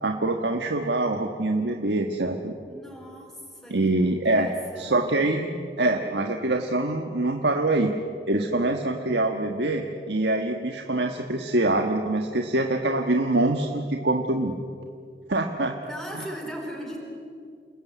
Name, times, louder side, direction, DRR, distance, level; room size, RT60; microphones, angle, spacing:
voice 1, 0.0-2.5 3.7-4.5 4.8-7.9 8.3-14.5 15.3-15.7 16.1-16.2, right 2 dB, 80° right, 4 dB, 1.4 m, -24 dB
voice 2, 2.7-4.0 4.3-5.3 15.8-17.0, equal, ahead, -1 dB, 4.3 m, -39 dB
29.5 x 19.5 x 9.3 m, 2.4 s
head